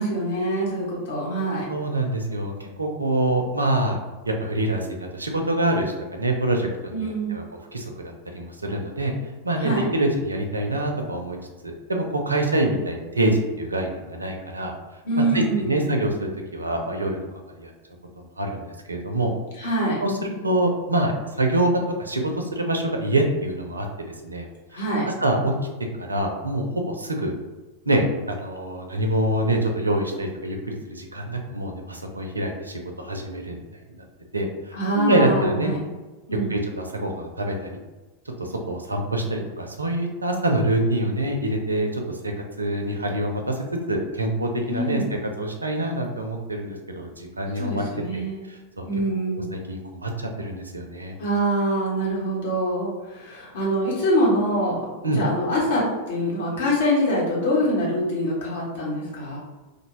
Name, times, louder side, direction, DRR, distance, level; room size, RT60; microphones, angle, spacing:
voice 1, 0.0-1.7 6.9-7.4 9.6-9.9 15.0-15.9 19.6-20.0 24.7-25.1 34.7-35.8 36.3-36.6 44.7-45.1 47.6-48.5 48.9-49.5 51.2-54.9 55.1-59.4, right 1 dB, 60° left, -4 dB, 0.9 m, -24 dB
voice 2, 1.7-4.0 4.3-5.9 6.1-7.4 7.7-9.1 9.4-11.4 11.6-14.7 15.3-17.2 17.6-17.7 18.2-19.3 19.6-19.7 20.0-21.7 22.0-24.5 24.7-25.5 26.0-26.6 26.9-27.3 27.9-33.6 33.9-34.0 34.3-35.7 36.5-37.7 38.4-42.3 42.6-43.6 43.9-45.0 45.4-47.8 48.1-48.2 48.5-48.9 49.5-51.1 55.0-55.2, right 1 dB, 80° right, 3 dB, 0.4 m, -25 dB
2.5 x 2.1 x 3.0 m, 1.2 s
figure-of-eight pair, 90°, 0 cm